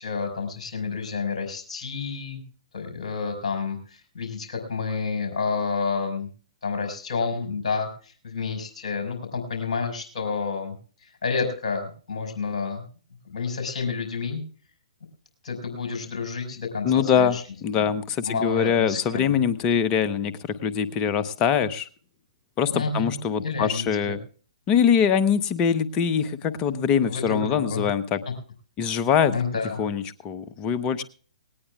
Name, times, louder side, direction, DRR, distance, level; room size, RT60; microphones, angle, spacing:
voice 1, 0.0-2.4 2.7-6.3 6.6-10.7 11.0-12.8 13.3-14.4 15.4-17.4 17.8-17.9 18.3-19.3 22.7-24.2 27.0-27.8 29.3-29.8, left 5 dB, 50° left, 4 dB, 5.1 m, -30 dB
voice 2, 16.8-20.3 20.6-21.9 22.6-24.2 24.7-28.2 28.8-29.3 29.8-31.0, left 7 dB, 25° left, 12 dB, 0.9 m, -23 dB
19.0 x 18.5 x 2.4 m, 0.41 s
figure-of-eight pair, 125°, 4 cm